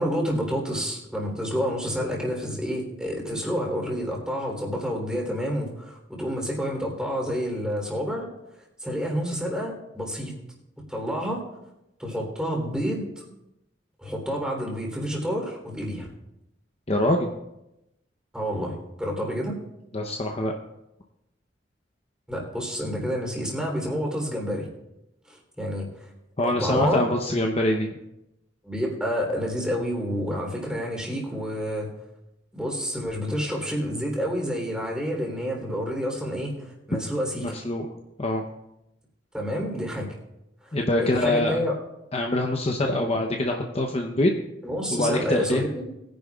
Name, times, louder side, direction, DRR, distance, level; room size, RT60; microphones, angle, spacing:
voice 1, 0.0-8.3 8.8-10.3 10.9-11.4 12.0-13.2 14.0-16.1 18.3-19.6 22.3-24.7 25.3-26.1 26.4-27.0 28.6-31.9 32.5-37.6 39.3-40.1 40.6-41.7 42.8-43.1 44.6-45.9, equal, 5° right, -1 dB, 3.3 m, -29 dB
voice 2, 16.9-17.3 19.9-20.5 26.4-28.0 37.4-37.9 38.2-38.4 40.7-41.6 42.1-44.3 44.9-45.6, left 1 dB, 35° left, 2 dB, 0.7 m, -24 dB
21.0 x 10.5 x 2.4 m, 0.89 s
head